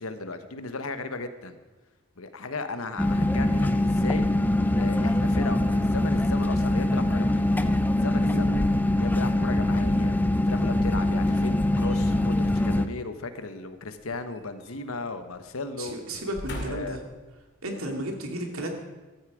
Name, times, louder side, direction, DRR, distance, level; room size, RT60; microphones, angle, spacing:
voice 1, 0.0-1.6 2.2-4.3 4.7-7.5 7.9-8.6 9.0-10.1 10.5-16.0 16.7-17.0, left 3 dB, 75° left, 9 dB, 1.2 m, -36 dB
sound 1, 3.0-12.9, left 1 dB, 10° left, 0.4 m, -23 dB
voice 2, 8.2-8.7 15.8-17.0 17.6-18.7, right 1 dB, 80° right, 3 dB, 2.4 m, -33 dB
sound 2, 11.3-12.4 13.9-15.1 15.4-15.6 16.1-17.1 17.7-17.8, left 1 dB, 50° left, 2.5 m, -40 dB
14.5 x 13.5 x 5.0 m, 1.2 s
head